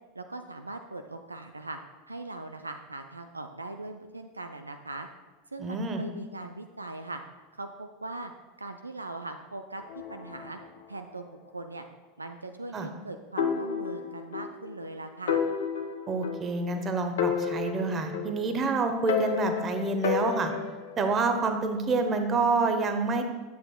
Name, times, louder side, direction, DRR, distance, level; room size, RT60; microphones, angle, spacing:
voice 1, 0.1-1.8 2.1-5.1 5.5-7.2 7.5-8.3 8.6-9.8 10.1-10.6 10.9-11.8 12.2-15.4, right 2 dB, 85° right, 7 dB, 0.3 m, -40 dB
voice 2, 5.6-6.0 12.7-12.9 16.1-20.5 21.0-23.2, right 3 dB, 30° right, 6 dB, 0.9 m, -27 dB
sound 1, 9.8-11.9, left 5 dB, 45° left, 1.1 m, -48 dB
sound 2, 13.4-14.5 14.8-14.9 15.3-16.8 17.2-18.6 19.1-20.9, left 7 dB, 65° left, 0.6 m, -30 dB
10.0 x 7.8 x 2.2 m, 1.2 s
figure-of-eight pair, 80°, 0 cm